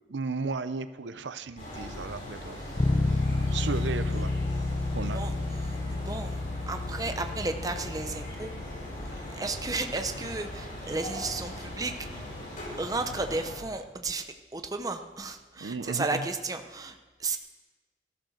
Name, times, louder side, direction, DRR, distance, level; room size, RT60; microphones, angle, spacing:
voice 1, 0.1-2.6 3.0-4.3 4.9-5.2 15.6-16.3, right 4 dB, 85° right, 13 dB, 0.7 m, -35 dB
sound 1, 1.6-13.6, left 1 dB, 45° left, 4.7 m, -40 dB
Bass guitar, 2.8-12.5, left 2 dB, 30° left, 0.8 m, -32 dB
voice 2, 5.6-6.4 6.7-8.5 9.4-12.2 12.8-14.3 14.5-17.4, right 3 dB, 20° right, 7 dB, 0.7 m, -33 dB
14.5 x 13.0 x 6.4 m, 1.3 s
head